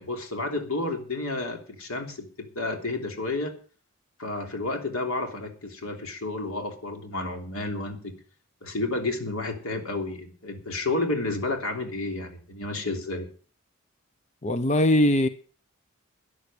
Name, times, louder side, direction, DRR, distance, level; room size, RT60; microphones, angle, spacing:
voice 1, 0.0-3.6 4.2-8.2 8.6-13.3, left 2 dB, 90° left, 4 dB, 3.2 m, -31 dB
voice 2, 14.4-15.3, left 1 dB, 30° left, 11 dB, 0.8 m, -21 dB
13.0 x 10.0 x 6.7 m, 0.40 s
head